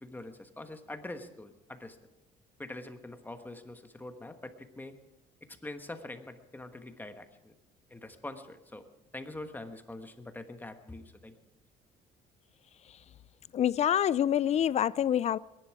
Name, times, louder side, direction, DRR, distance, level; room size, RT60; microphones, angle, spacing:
voice 1, 0.0-2.0 2.6-4.9 5.6-7.5 7.9-8.8 9.1-11.4, left 2 dB, 10° left, 1.3 m, -44 dB
voice 2, 13.5-15.4, left 10 dB, 40° left, 0.4 m, -26 dB
21.5 x 11.0 x 4.8 m
cardioid pair, 110°, 17 cm